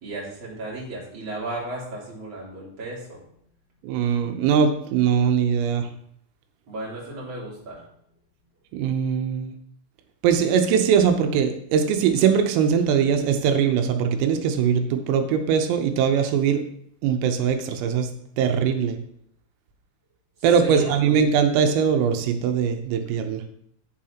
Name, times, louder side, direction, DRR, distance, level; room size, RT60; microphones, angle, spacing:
voice 1, 0.0-3.2 6.7-7.8 20.6-21.0, right 2 dB, 30° right, -6 dB, 3.3 m, -34 dB
voice 2, 3.8-5.9 8.7-9.5 10.2-16.6 17.0-18.1 18.4-19.0 20.4-23.4, right 7 dB, 85° right, 6 dB, 3.6 m, -21 dB
11.5 x 9.4 x 2.9 m, 0.68 s
omnidirectional pair, 5.8 m